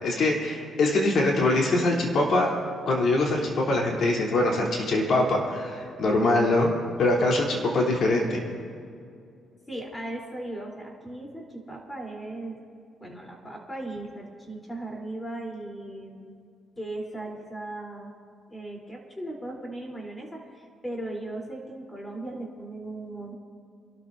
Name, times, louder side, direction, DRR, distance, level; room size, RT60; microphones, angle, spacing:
voice 1, 0.0-2.5 2.9-6.7 7.0-8.4, left 2 dB, 65° left, -2 dB, 3.5 m, -23 dB
voice 2, 9.7-12.6 13.0-16.3 16.8-18.1 18.5-23.3, right 1 dB, 15° left, 0 dB, 3.7 m, -37 dB
27.5 x 13.0 x 2.7 m, 2.3 s
cardioid pair, 90°, 0 cm